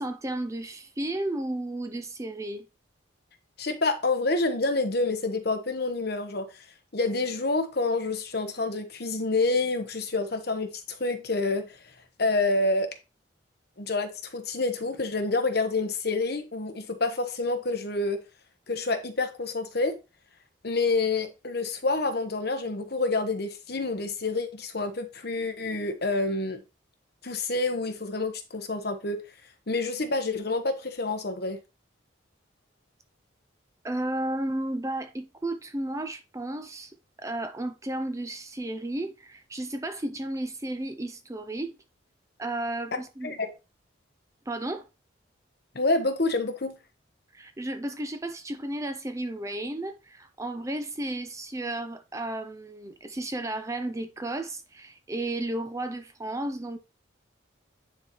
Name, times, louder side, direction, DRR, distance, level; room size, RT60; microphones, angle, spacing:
voice 1, 0.0-2.7 33.8-41.8 42.4-43.3 44.5-44.8 47.3-56.8, right 1 dB, 15° right, 0.5 m, -33 dB
voice 2, 3.6-6.6 6.9-11.8 12.2-12.9 13.8-18.2 18.7-19.9 20.6-26.6 27.2-29.2 29.7-31.6 42.9-43.0 43.2-43.5 45.7-46.8, left 3 dB, 55° left, 1.1 m, -28 dB
9.7 x 4.1 x 3.0 m
head